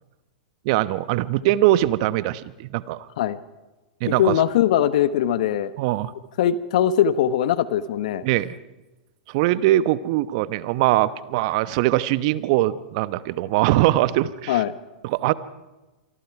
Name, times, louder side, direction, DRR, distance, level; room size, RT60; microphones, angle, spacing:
voice 1, 0.6-3.1 4.0-4.3 5.8-6.1 8.2-8.5 9.3-14.6 15.0-15.3, right 15 dB, 50° right, 15 dB, 1.1 m, -21 dB
voice 2, 4.0-5.7 6.4-8.2 14.5-14.7, left 10 dB, 60° left, 13 dB, 1.2 m, -21 dB
27.0 x 24.0 x 4.8 m, 1.1 s
hypercardioid pair, 105°, 4 cm